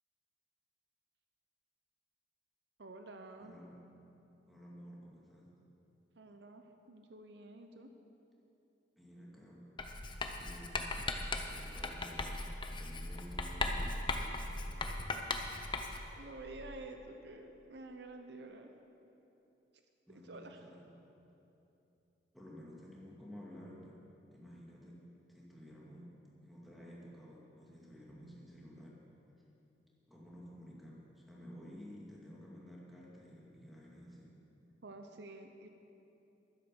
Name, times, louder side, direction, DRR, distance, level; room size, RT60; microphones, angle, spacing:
voice 1, 2.8-3.5 6.2-7.9 16.1-18.7 20.1-20.6 34.8-35.7, right 2 dB, 70° right, 6 dB, 0.8 m, -50 dB
voice 2, 3.4-3.9 4.5-5.5 9.0-9.7 10.4-15.2 20.1-20.9 22.3-24.0 24.3-25.0 25.3-29.0 30.1-34.3, equal, ahead, -5 dB, 2.1 m, -53 dB
Writing, 9.8-16.2, left 2 dB, 25° left, 0.7 m, -38 dB
11.5 x 10.5 x 7.0 m, 2.9 s
head